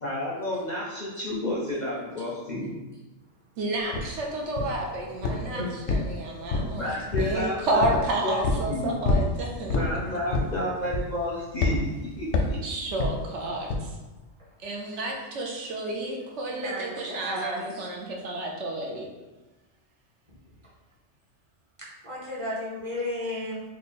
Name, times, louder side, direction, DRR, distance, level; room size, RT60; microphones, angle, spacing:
voice 1, 0.0-2.8 5.5-5.7 6.6-8.9 9.7-11.9 12.2-12.6, left 1 dB, 50° left, -5 dB, 0.6 m, -31 dB
voice 2, 3.6-6.9 7.2-9.8 10.1-10.2 12.6-14.0 14.6-19.1, right 1 dB, 70° right, 0 dB, 0.8 m, -31 dB
sound 1, 3.9-4.1 4.6-4.9 5.2-5.5 5.9-6.8 7.1-7.4 7.8-8.0 8.4-8.7 9.0-9.3 9.7-9.9 10.3-10.6 10.9-11.2 11.6-11.8 12.3-12.6 13.0-13.2 13.7-13.9, left 3 dB, 90° left, 1.0 m, -25 dB
voice 3, 16.6-17.9 22.0-23.6, left 1 dB, 30° right, -7 dB, 0.9 m, -33 dB
3.1 x 2.3 x 4.1 m, 1.1 s
omnidirectional pair, 1.3 m